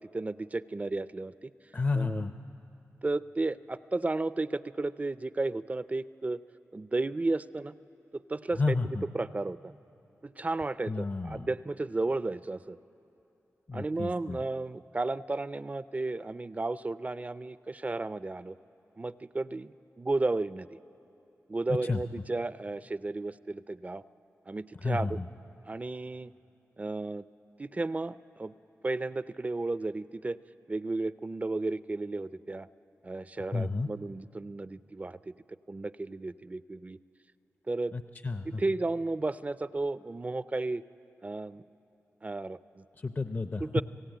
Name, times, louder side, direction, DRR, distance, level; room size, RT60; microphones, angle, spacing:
voice 1, 0.0-1.5 1.9-2.3 3.0-6.4 6.7-7.7 8.1-8.8 9.1-9.7 10.2-12.8 13.7-18.5 19.0-20.7 21.5-24.0 24.5-25.2 25.6-26.3 26.8-27.2 27.6-28.5 28.8-30.4 30.7-32.7 33.0-35.3 35.7-37.0 37.7-37.9 38.4-40.8 41.2-41.6 42.2-42.8 43.6-43.8, right 2 dB, 30° right, 15 dB, 0.4 m, -33 dB
voice 2, 1.7-2.3 8.6-9.0 10.9-11.5 13.7-14.4 21.9-22.0 24.8-25.1 33.5-33.9 37.9-38.6 43.0-43.6, left 3 dB, 35° left, 8 dB, 0.6 m, -31 dB
28.5 x 17.0 x 9.0 m, 2.9 s
wide cardioid pair, 80°, 5 cm